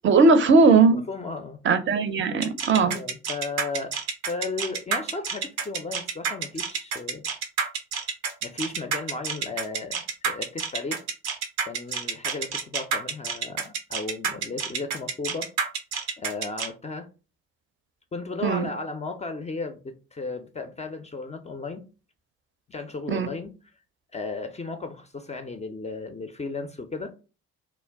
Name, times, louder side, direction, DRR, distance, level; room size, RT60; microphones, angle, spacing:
voice 1, 0.0-1.0 1.6-3.0 18.4-18.7 23.1-23.3, right 4 dB, 35° right, 0.5 m, -18 dB
voice 2, 1.1-1.6 2.8-3.9 4.3-7.3 8.4-11.0 11.6-15.5 16.2-17.1 18.1-21.9 22.7-23.5 24.1-27.1, left 3 dB, 20° left, 0.4 m, -35 dB
sound 1, 2.4-16.7, right 6 dB, 80° right, 0.6 m, -29 dB
2.2 x 2.1 x 3.4 m
hypercardioid pair, 45°, 34 cm